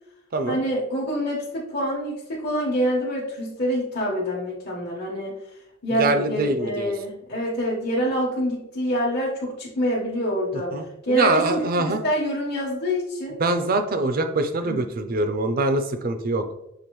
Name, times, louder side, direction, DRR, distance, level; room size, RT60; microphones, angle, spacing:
voice 1, 0.5-5.4 5.8-10.7 11.0-13.4 14.6-14.8, equal, 50° left, -7 dB, 1.1 m, -26 dB
voice 2, 6.0-6.9 10.7-12.0 13.4-16.4, right 2 dB, 45° right, 8 dB, 0.5 m, -23 dB
6.8 x 2.6 x 3.0 m, 0.83 s
head